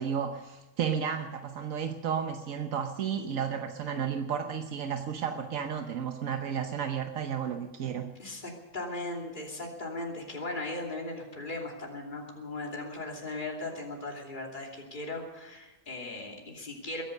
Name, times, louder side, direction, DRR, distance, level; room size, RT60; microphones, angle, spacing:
voice 1, 0.0-8.1, right 7 dB, 85° right, 5 dB, 1.3 m, -32 dB
voice 2, 8.2-17.0, left 2 dB, 35° left, -1 dB, 3.0 m, -38 dB
22.0 x 10.0 x 6.6 m, 1.1 s
omnidirectional pair, 1.4 m